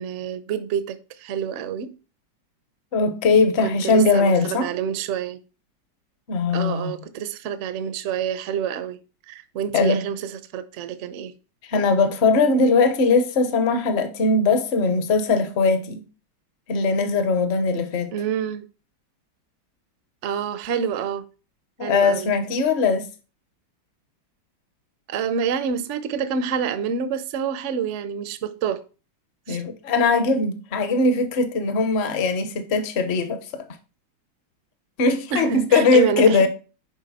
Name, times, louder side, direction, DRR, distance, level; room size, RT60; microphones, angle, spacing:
voice 1, 0.0-1.9 3.6-5.4 6.5-9.0 9.3-11.3 18.1-18.6 20.2-21.2 21.8-22.3 25.1-28.8 29.5-29.6 35.3-36.5, right 7 dB, 60° right, 0.7 m, -27 dB
voice 2, 2.9-4.7 6.3-6.9 9.7-10.0 11.7-16.0 16.7-18.1 21.8-23.1 29.5-33.7 35.0-36.5, left 3 dB, 45° left, 0.9 m, -20 dB
10.5 x 3.9 x 4.1 m
omnidirectional pair, 2.1 m